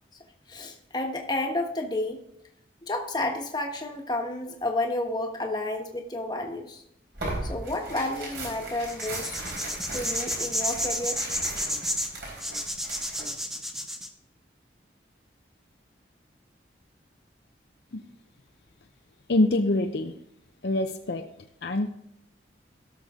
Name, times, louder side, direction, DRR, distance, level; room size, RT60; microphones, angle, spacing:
voice 1, 0.5-2.2 2.9-6.8 7.4-9.3 9.9-11.2, left 2 dB, 20° left, 2 dB, 1.2 m, -31 dB
Tearing, 7.1-13.3, right 2 dB, 65° right, 4.3 m, -37 dB
sound 1, 8.9-14.1, equal, ahead, 0.7 m, -31 dB
voice 2, 19.3-20.1 20.6-21.2 21.6-21.9, left 2 dB, 60° left, 6 dB, 0.6 m, -25 dB
17.0 x 6.6 x 3.7 m, 0.78 s
head